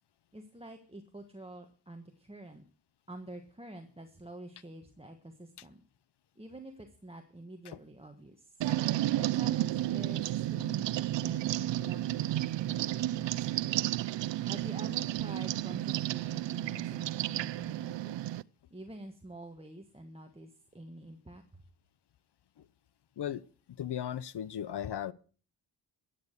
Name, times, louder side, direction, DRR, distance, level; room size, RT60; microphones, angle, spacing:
voice 1, 0.3-2.6 3.1-5.8 6.3-8.6 9.2-13.8 14.5-18.2 18.7-21.6, right 1 dB, 15° right, 1.4 m, -48 dB
sound 1, 8.6-18.4, right 14 dB, 75° right, 0.5 m, -32 dB
voice 2, 23.8-25.1, left 10 dB, 65° left, 0.7 m, -36 dB
15.0 x 9.0 x 6.5 m
wide cardioid pair, 110°, 44 cm